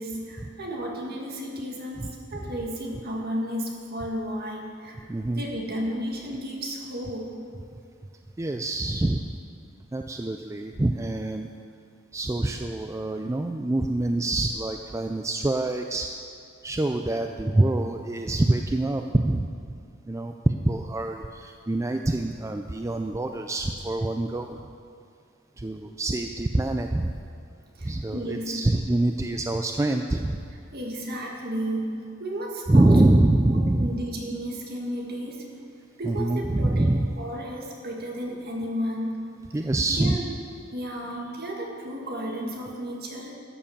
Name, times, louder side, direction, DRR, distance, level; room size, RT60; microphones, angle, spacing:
voice 1, 0.0-5.0 5.4-7.4 27.8-28.6 30.7-32.9 33.5-35.5 36.0-39.2 39.9-40.2 40.7-43.4, equal, 50° right, -1 dB, 2.0 m, -33 dB
voice 2, 5.1-5.4 8.4-9.3 9.9-11.5 12.1-16.1 16.6-19.5 20.1-24.6 25.6-27.1 27.8-30.5 32.7-34.0 36.0-37.1 39.5-40.2, right 2 dB, 15° right, 5 dB, 0.4 m, -25 dB
12.5 x 7.0 x 7.2 m, 2.3 s
head